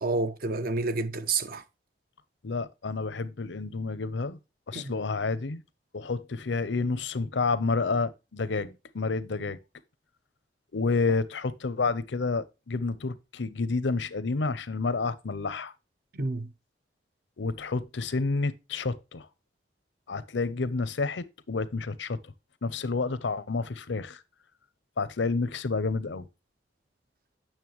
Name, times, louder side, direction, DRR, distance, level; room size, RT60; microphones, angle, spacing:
voice 1, 0.0-1.6 4.7-4.9 16.1-16.5, right 3 dB, 55° right, 0.8 m, -29 dB
voice 2, 2.4-4.4 4.7-5.6 5.9-9.6 10.7-15.7 17.4-19.3 20.1-22.2 22.6-24.2 25.0-26.2, left 4 dB, 90° left, 0.7 m, -29 dB
9.0 x 6.5 x 3.0 m
head